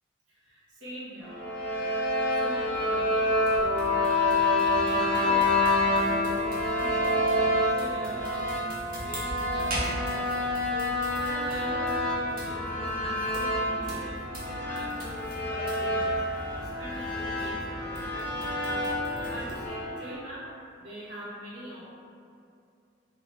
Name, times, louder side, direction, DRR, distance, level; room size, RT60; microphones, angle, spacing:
voice 1, 0.3-1.4 2.3-8.6 9.0-15.2 15.5-18.3 18.6-20.5 20.8-21.9, equal, 85° right, -8 dB, 0.9 m, -42 dB
sound 1, 1.2-20.2, left 2 dB, 10° left, 0.5 m, -28 dB
sound 2, 1.2-19.7, right 1 dB, 50° right, 0.7 m, -41 dB
2.8 x 2.4 x 3.0 m, 2.5 s
head